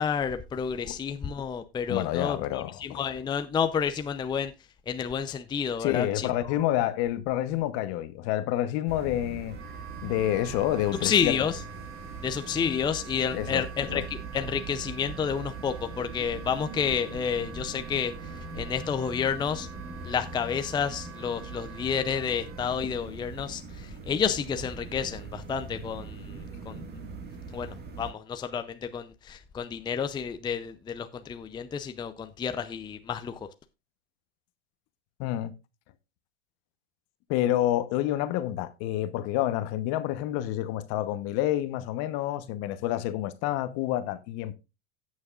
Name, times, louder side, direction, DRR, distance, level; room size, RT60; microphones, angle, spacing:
voice 1, 0.0-4.5 4.9-6.6 10.9-11.6 12.2-19.7 20.0-27.0 27.5-33.5, left 7 dB, 15° left, 0.6 m, -30 dB
voice 2, 1.9-3.0 5.8-9.5 10.0-11.3 13.3-14.0 35.2-35.5 37.3-44.5, left 13 dB, 50° left, 1.1 m, -28 dB
sound 1, 8.9-28.1, right 4 dB, 30° right, 1.9 m, -41 dB
Wind instrument woodwind instrument, 9.5-22.7, right 7 dB, 80° right, 1.9 m, -47 dB
17.0 x 6.3 x 2.5 m
hypercardioid pair, 105°, 32 cm